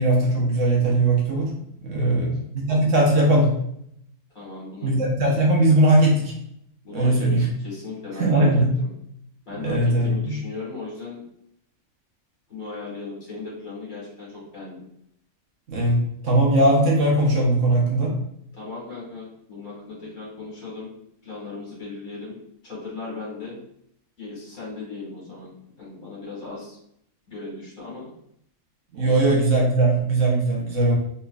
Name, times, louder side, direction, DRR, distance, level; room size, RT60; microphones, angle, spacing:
voice 1, 0.0-1.5 1.8-3.5 4.8-6.3 6.9-7.4 8.2-8.7 9.6-10.3 15.7-18.1 28.9-31.0, right 1 dB, 60° right, -3 dB, 1.2 m, -19 dB
voice 2, 4.3-5.0 6.8-8.9 9.5-11.2 12.5-14.8 18.5-20.9 21.2-22.4 22.6-23.6 24.2-25.5 25.8-26.8 27.3-28.1 28.9-29.2, left 3 dB, 70° left, -6 dB, 2.1 m, -37 dB
3.7 x 3.1 x 2.4 m, 0.73 s
omnidirectional pair, 1.5 m